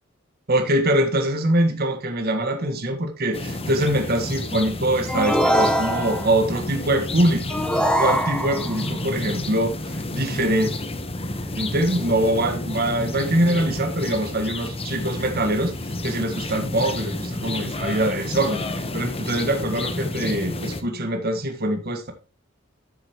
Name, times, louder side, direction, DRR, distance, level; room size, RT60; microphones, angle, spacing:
voice 1, 0.5-7.5 7.8-10.7 11.6-15.7 16.0-18.6 18.9-22.1, right 1 dB, 50° right, 5 dB, 1.6 m, -23 dB
sound 1, 3.3-20.8, left 2 dB, 30° left, 1.1 m, -30 dB
sound 2, 5.1-6.4 7.5-8.8, equal, 5° left, 1.0 m, -22 dB
12.5 x 6.8 x 3.1 m, 0.33 s
head